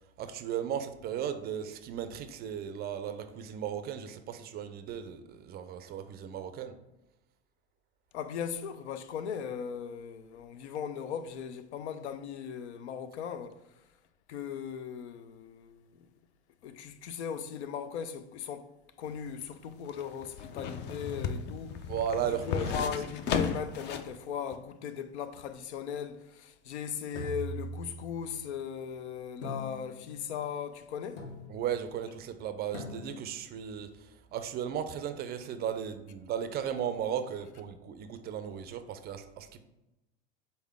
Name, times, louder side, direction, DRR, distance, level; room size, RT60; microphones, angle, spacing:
voice 1, 0.2-6.8 21.9-22.9 31.5-39.6, right 9 dB, 30° right, 0.4 m, -36 dB
voice 2, 8.1-13.6 14.3-16.1 16.6-18.7 19.0-21.8 22.5-31.3, left 7 dB, 90° left, 0.5 m, -38 dB
sound 1, 19.1-24.2 24.5-24.6, left 6 dB, 35° left, 0.4 m, -35 dB
sound 2, 27.1-28.3 29.4-30.2 31.2-31.8 32.7-33.4, equal, 50° left, 1.3 m, -41 dB
4.1 x 3.6 x 3.5 m
supercardioid pair, 110°, 32 cm